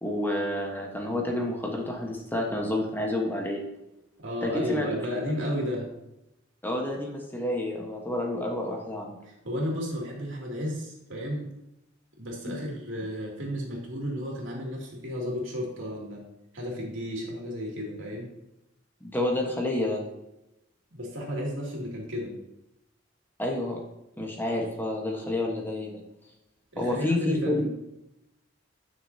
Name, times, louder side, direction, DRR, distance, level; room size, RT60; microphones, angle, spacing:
voice 1, 0.0-3.6 4.4-4.9 6.6-9.2 12.5-12.6 19.0-20.0 23.4-23.8 24.2-26.0 26.8-27.6, left 1 dB, 10° left, 0 dB, 1.2 m, -29 dB
voice 2, 4.2-5.9 9.2-11.5 12.2-16.2 16.5-18.3 20.9-22.4 26.7-27.7, equal, 75° right, -2 dB, 2.7 m, -33 dB
10.5 x 6.4 x 2.8 m, 0.89 s
head